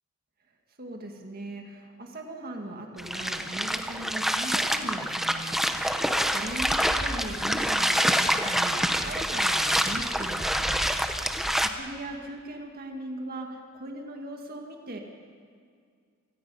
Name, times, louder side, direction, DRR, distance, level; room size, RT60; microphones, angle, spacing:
voice 1, 0.8-10.9 11.6-15.0, right 1 dB, 45° right, 2 dB, 1.8 m, -39 dB
sound 1, 3.0-11.7, equal, ahead, 0.9 m, -26 dB
27.5 x 19.0 x 5.5 m, 2.2 s
head